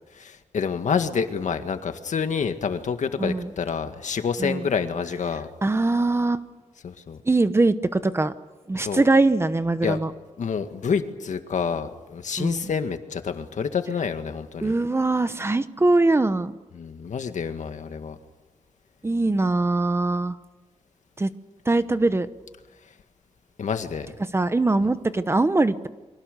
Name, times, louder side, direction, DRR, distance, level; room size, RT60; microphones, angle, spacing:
voice 1, 0.2-5.5 6.8-7.2 8.8-9.0 9.8-10.0 10.4-14.7 16.8-18.2 23.6-24.1, left 6 dB, 75° left, 7 dB, 1.9 m, -28 dB
voice 2, 3.2-3.5 4.4-4.6 5.6-6.4 7.3-8.3 8.7-10.1 12.4-12.7 14.6-16.5 19.0-20.4 21.2-21.3 21.7-22.3 24.2-25.9, right 2 dB, 20° right, 12 dB, 0.9 m, -22 dB
29.5 x 24.5 x 6.7 m, 1.2 s
wide cardioid pair, 155°, 13 cm